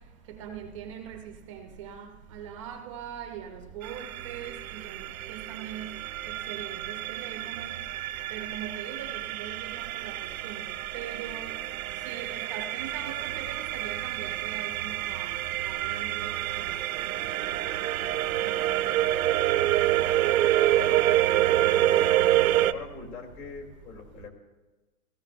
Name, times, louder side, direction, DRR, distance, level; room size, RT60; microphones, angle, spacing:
voice 1, 0.4-2.1 2.3-5.9 6.3-7.7 8.3-10.1 10.4-10.6 10.9-11.5 12.1-13.4 13.7-15.3 15.7-16.3 17.4-17.6 18.4-18.6, right 8 dB, 25° right, 6 dB, 0.4 m, -41 dB
sound 1, 3.8-22.7, right 13 dB, 70° right, 0.6 m, -27 dB
voice 2, 20.7-24.3, left 5 dB, 75° left, 0 dB, 3.0 m, -42 dB
15.5 x 13.5 x 2.5 m, 1.2 s
hypercardioid pair, 135°, 44 cm